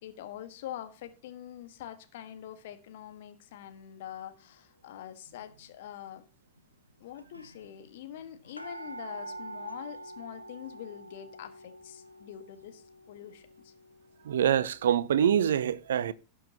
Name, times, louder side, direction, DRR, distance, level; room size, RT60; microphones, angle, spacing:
voice 1, 0.0-6.2 7.0-13.7, left 11 dB, 55° left, 1.4 m, -44 dB
sound 1, 5.4-5.7 6.6-6.7 6.9-7.0 7.2-14.8 15.3-15.4, right 2 dB, 90° left, 0.8 m, -46 dB
voice 2, 14.3-16.1, right 9 dB, 60° right, 0.6 m, -25 dB
17.5 x 6.4 x 2.8 m
figure-of-eight pair, 90°, 0 cm